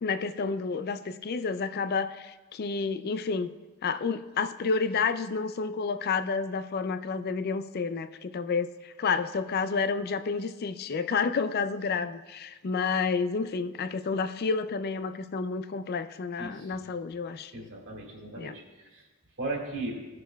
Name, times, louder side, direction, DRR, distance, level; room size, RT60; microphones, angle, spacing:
voice 1, 0.0-3.5 3.8-17.5 18.4-18.6, left 5 dB, 45° left, 11 dB, 0.4 m, -30 dB
voice 2, 16.4-16.7 17.5-18.6 18.9-19.0 19.4-20.1, right 2 dB, 60° right, -1 dB, 2.0 m, -36 dB
17.0 x 6.7 x 2.3 m, 1.2 s
head